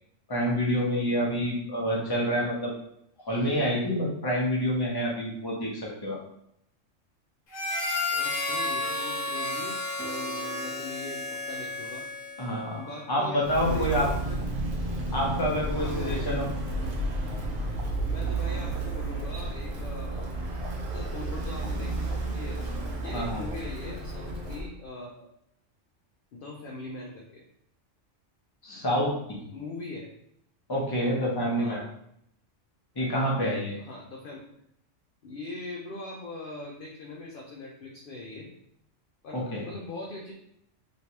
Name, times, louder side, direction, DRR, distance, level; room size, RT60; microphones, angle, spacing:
voice 1, 0.3-2.7 3.2-6.2 12.4-12.8 13.1-14.1 15.1-16.5 23.1-23.4 28.6-29.4 30.7-31.8 32.9-33.8 39.3-39.6, equal, 20° left, -4 dB, 0.8 m, -27 dB
Harmonica, 7.5-12.5, left 2 dB, 80° left, 1.2 m, -32 dB
voice 2, 8.1-12.1 12.8-14.4 15.7-16.5 18.0-22.6 23.0-25.3 26.3-27.4 29.5-30.1 31.6-31.9 33.8-34.4 35.2-38.5 39.2-40.3, left 2 dB, 60° left, -2 dB, 0.6 m, -41 dB
sound 1, 10.0-12.4, equal, 85° right, 1.0 m, -44 dB
Walk footsteps, 13.4-24.7, right 2 dB, 55° right, 0.9 m, -32 dB
3.2 x 3.0 x 2.9 m, 0.74 s
omnidirectional pair, 1.3 m